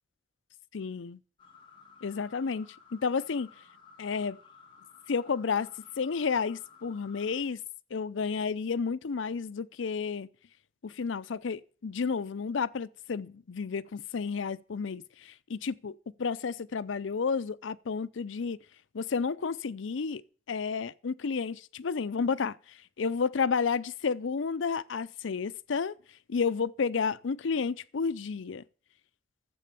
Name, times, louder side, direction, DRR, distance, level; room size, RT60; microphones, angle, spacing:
voice 1, 0.7-1.2 2.0-3.5 4.0-4.4 5.1-5.7 6.0-7.6 7.9-10.3 10.8-18.6 18.9-20.2 20.5-22.6 23.0-26.0 26.3-28.6, left 5 dB, 80° left, 0.5 m, -31 dB
sound 1, 1.4-7.4, left 5 dB, 25° left, 1.7 m, -56 dB
12.5 x 7.6 x 6.8 m
head